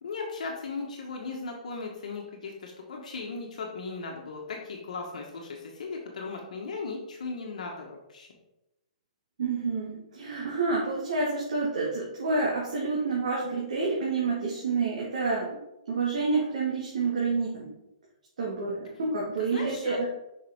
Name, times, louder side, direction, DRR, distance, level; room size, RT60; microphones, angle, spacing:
voice 1, 0.0-8.3 19.4-20.1, left 4 dB, 65° left, 0 dB, 1.4 m, -37 dB
voice 2, 9.4-15.6 15.9-17.7 18.4-20.1, right 4 dB, 65° right, -4 dB, 2.0 m, -28 dB
6.6 x 5.6 x 3.7 m, 0.90 s
hypercardioid pair, 175°, 4 cm